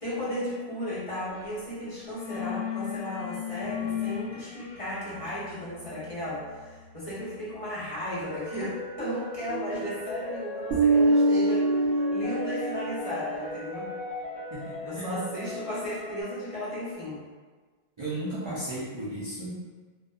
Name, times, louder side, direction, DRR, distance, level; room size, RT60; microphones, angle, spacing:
voice 1, 0.0-11.7 12.1-13.8 14.8-17.2, equal, 35° left, -11 dB, 0.9 m, -35 dB
sound 1, 1.3-1.6 1.8-8.5, left 10 dB, 80° left, 0.9 m, -38 dB
sound 2, 8.2-16.2, left 1 dB, 5° left, 1.5 m, -38 dB
Bass guitar, 10.7-13.1, right 2 dB, 75° right, 0.8 m, -23 dB
voice 2, 14.5-15.2 18.0-19.5, right 1 dB, 55° right, -8 dB, 0.3 m, -34 dB
2.6 x 2.2 x 2.3 m, 1.4 s
omnidirectional pair, 1.0 m